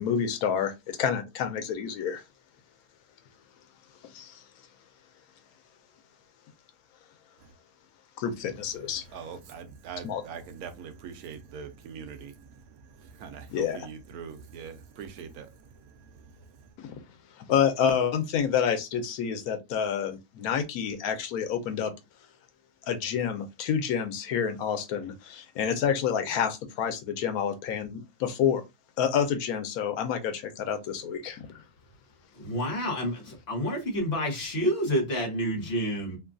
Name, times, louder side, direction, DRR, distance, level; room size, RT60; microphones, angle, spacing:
voice 1, 0.0-2.2 4.1-4.4 8.2-9.0 10.0-10.2 13.5-13.9 16.8-17.0 17.4-21.9 22.9-28.6 29.0-31.6, left 8 dB, 85° left, 1.1 m, -28 dB
voice 2, 8.8-16.8, right 6 dB, 80° right, 1.1 m, -43 dB
voice 3, 32.4-36.2, equal, 45° left, 1.2 m, -29 dB
2.9 x 2.3 x 2.4 m
omnidirectional pair, 1.5 m